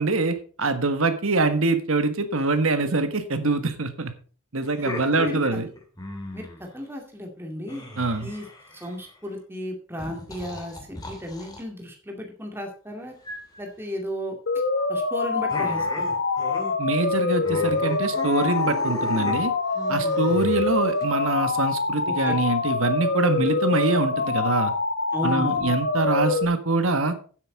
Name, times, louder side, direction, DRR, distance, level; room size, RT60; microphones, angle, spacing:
voice 1, 0.0-4.1 4.5-5.7 8.0-8.3 16.8-19.5 19.9-24.7 25.2-27.2, right 3 dB, 65° right, 9 dB, 1.4 m, -24 dB
sound 1, 4.6-6.6 7.7-9.1 10.0-11.6 13.2-13.7 15.5-16.7 17.0-17.2 17.4-21.0, left 2 dB, 15° left, 2.2 m, -36 dB
voice 2, 4.8-5.4 6.3-7.8 8.2-8.5 8.7-13.1 13.6-14.4 14.9-15.9 22.1-22.4 25.1-25.7, equal, 10° right, 1 dB, 2.3 m, -34 dB
sound 2, 14.5-26.4, left 3 dB, 50° left, 1.2 m, -25 dB
9.7 x 8.1 x 5.3 m, 0.40 s
head